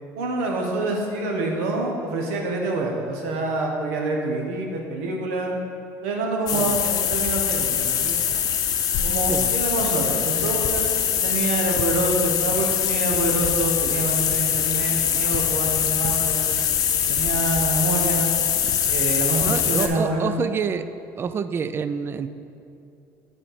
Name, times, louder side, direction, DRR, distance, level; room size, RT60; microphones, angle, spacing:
voice 1, 0.2-5.6 6.0-8.4 9.0-16.5 17.1-18.4 18.9-20.5, right 2 dB, 85° right, 1 dB, 1.1 m, -26 dB
sound 1, 6.5-19.9, left 8 dB, 55° left, 0.7 m, -23 dB
voice 2, 19.4-20.9 21.2-22.3, right 6 dB, 30° right, 12 dB, 0.3 m, -27 dB
7.5 x 4.2 x 4.9 m, 2.6 s
supercardioid pair, 90°, 8 cm